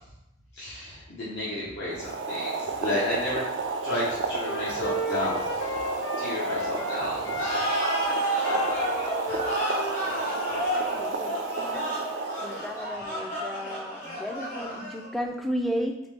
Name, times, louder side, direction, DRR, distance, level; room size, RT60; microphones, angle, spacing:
voice 1, 0.5-3.4 3.8-5.8 6.2-7.3 8.5-8.9, left 1 dB, 60° left, -10 dB, 1.0 m, -32 dB
Boiling, 1.9-12.9, right 3 dB, 75° right, 0.4 m, -32 dB
Wind instrument woodwind instrument, 4.1-7.0 7.2-10.7, equal, 85° left, 0.6 m, -35 dB
sound 1, 7.3-15.2, right 1 dB, 40° left, 1.5 m, -31 dB
voice 2, 10.5-12.1 12.4-16.0, equal, ahead, 2 dB, 0.3 m, -34 dB
3.9 x 3.6 x 3.4 m, 0.87 s
head